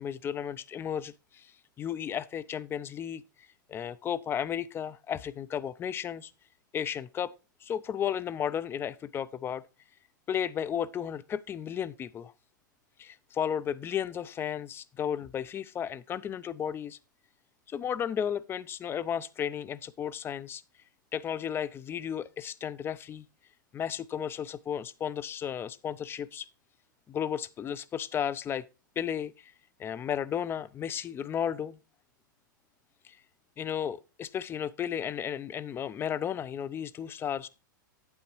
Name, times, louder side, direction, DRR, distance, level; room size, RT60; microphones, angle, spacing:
voice 1, 0.0-1.5 1.8-3.2 3.7-6.3 6.7-7.3 7.6-9.6 10.3-12.3 13.0-17.0 17.7-20.6 21.1-23.3 23.7-26.5 27.1-28.6 29.0-29.5 29.8-31.8 33.0-33.2 33.6-37.5, left 9 dB, 20° left, 0.5 m, -34 dB
8.8 x 8.7 x 3.0 m
hypercardioid pair, 105°, 11 cm